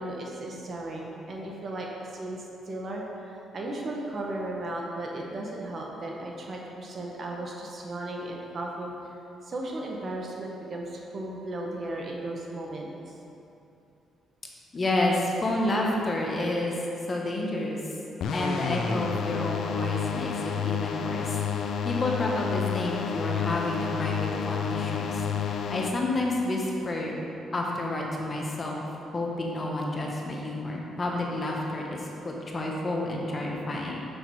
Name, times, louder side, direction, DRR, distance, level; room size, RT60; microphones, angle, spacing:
voice 1, 0.0-9.0 9.4-13.1, right 1 dB, 45° right, -1 dB, 1.2 m, -35 dB
voice 2, 14.7-16.7 17.1-17.8 18.3-21.4 21.8-27.2 27.5-28.8 29.1-34.1, left 1 dB, 35° left, -1 dB, 1.3 m, -30 dB
sound 1, 18.2-25.9, left 7 dB, 70° left, 0.4 m, -30 dB
6.6 x 6.0 x 4.8 m, 2.8 s
cardioid pair, 90°, 0 cm